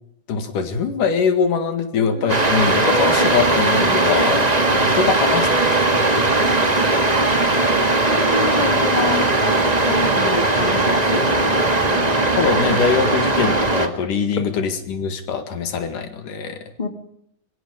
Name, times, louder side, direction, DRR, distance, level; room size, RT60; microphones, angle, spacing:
voice 1, 0.3-4.4 4.7-5.5 5.8-6.4 10.1-10.3 11.8-12.1 12.4-16.6, left 6 dB, 70° left, 7 dB, 3.5 m, -23 dB
sound 1, 2.1-11.0 11.4-11.5, right 4 dB, 65° right, 7.1 m, -32 dB
sound 2, 2.3-13.9, right 2 dB, 20° right, 1.1 m, -18 dB
voice 2, 8.1-9.3 9.9-11.6 16.8-16.9, left 4 dB, 15° left, 6 dB, 1.9 m, -27 dB
25.5 x 23.5 x 5.1 m, 0.70 s
omnidirectional pair, 4.0 m